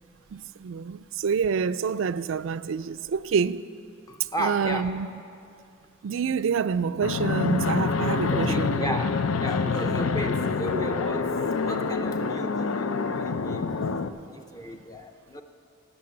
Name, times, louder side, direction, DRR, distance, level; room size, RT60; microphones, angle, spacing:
voice 1, 0.3-3.7 4.4-5.2 6.0-9.0, right 6 dB, 70° right, 0.4 m, -27 dB
voice 2, 4.1-4.9 8.3-15.4, equal, 15° left, 0.5 m, -34 dB
Fixed-wing aircraft airplane, 7.0-14.1, left 4 dB, 85° left, 0.5 m, -26 dB
12.5 x 9.4 x 8.6 m
head